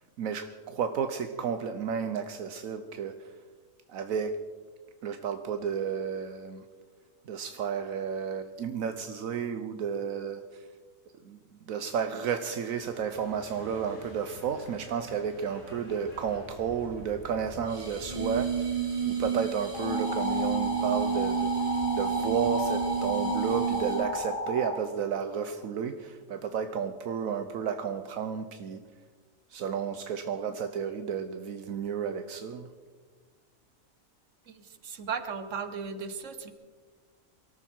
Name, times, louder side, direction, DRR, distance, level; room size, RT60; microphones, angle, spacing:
voice 1, 0.2-3.3 3.9-4.4 5.0-6.6 7.3-10.7 11.2-21.5 21.9-28.8 29.5-32.7, right 7 dB, 80° right, 8 dB, 1.2 m, -32 dB
sound 1, 12.5-17.7, left 1 dB, 80° left, 4.2 m, -48 dB
sound 2, 17.7-24.2, right 6 dB, 35° right, 2.5 m, -30 dB
sound 3, 19.7-24.8, left 1 dB, 65° left, 2.1 m, -33 dB
voice 2, 34.5-36.5, right 6 dB, 60° right, 10 dB, 1.5 m, -36 dB
23.5 x 14.0 x 4.5 m, 1.5 s
omnidirectional pair, 1.4 m